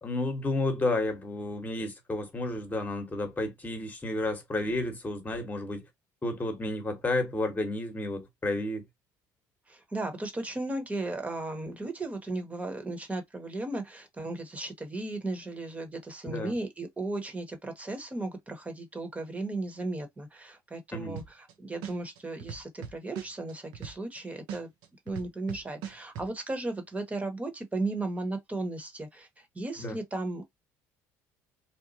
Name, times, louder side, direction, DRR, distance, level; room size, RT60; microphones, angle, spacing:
voice 1, 0.0-5.8 6.2-8.8 16.2-16.5 20.9-21.2 29.8-30.0, left 2 dB, 20° left, 1.1 m, -31 dB
voice 2, 9.7-24.7 25.1-30.4, right 2 dB, 15° right, 1.0 m, -35 dB
sound 1, 21.2-21.5 21.8-24.2 24.5-26.3, right 8 dB, 75° right, 0.6 m, -39 dB
3.0 x 2.1 x 2.7 m
supercardioid pair, 85°, 8 cm